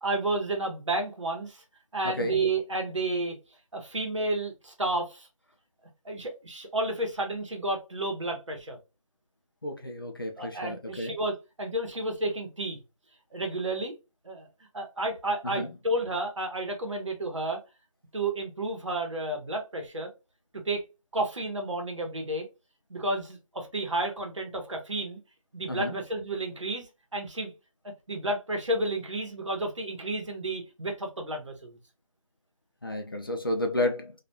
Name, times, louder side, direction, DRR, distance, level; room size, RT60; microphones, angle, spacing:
voice 1, 0.0-1.6 1.9-3.4 3.7-5.3 6.0-8.8 10.4-12.8 13.3-13.9 14.2-14.5 14.7-17.6 18.1-20.1 20.6-20.8 21.1-22.5 22.9-25.2 25.5-27.5 28.1-31.8, right 2 dB, 60° right, 0.9 m, -31 dB
voice 2, 2.0-2.3 9.6-11.1 15.4-15.7 25.7-26.0 32.8-34.1, left 1 dB, 40° left, 0.4 m, -31 dB
2.3 x 2.2 x 2.7 m
figure-of-eight pair, 170°, 18 cm